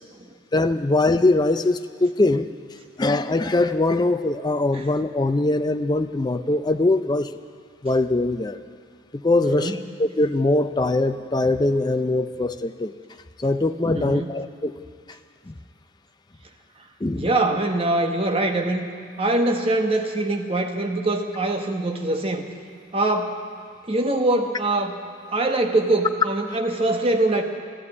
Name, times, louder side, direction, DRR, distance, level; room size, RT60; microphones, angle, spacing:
voice 1, 0.5-2.5 3.0-7.3 7.8-8.6 9.2-12.9 13.4-14.7 15.5-15.6 17.0-17.3, left 2 dB, 20° left, 9 dB, 0.4 m, -22 dB
voice 2, 9.4-9.8 13.9-14.3 17.1-18.9 19.2-22.4 22.9-23.4 23.9-25.0 25.3-27.4, right 2 dB, 30° right, 4 dB, 1.0 m, -23 dB
13.0 x 12.5 x 8.4 m, 2.2 s
head